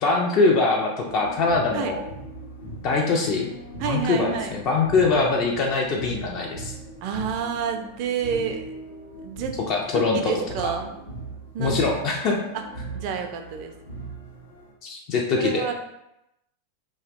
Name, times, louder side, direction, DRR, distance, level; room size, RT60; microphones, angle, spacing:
voice 1, 0.0-2.0 2.8-3.5 3.8-6.7 9.7-10.3 10.6-10.7 11.6-12.4 14.8-15.6, left 3 dB, 40° left, -1 dB, 0.3 m, -23 dB
sound 1, 1.1-14.7, right 3 dB, 70° left, 0.7 m, -39 dB
voice 2, 3.8-4.6 7.0-8.7 9.2-9.5 9.9-10.9 11.5-11.7 12.5-12.6 12.9-13.7 15.4-15.7, right 7 dB, 45° right, 5 dB, 0.3 m, -29 dB
2.7 x 2.0 x 2.4 m, 0.85 s
figure-of-eight pair, 90°, 0 cm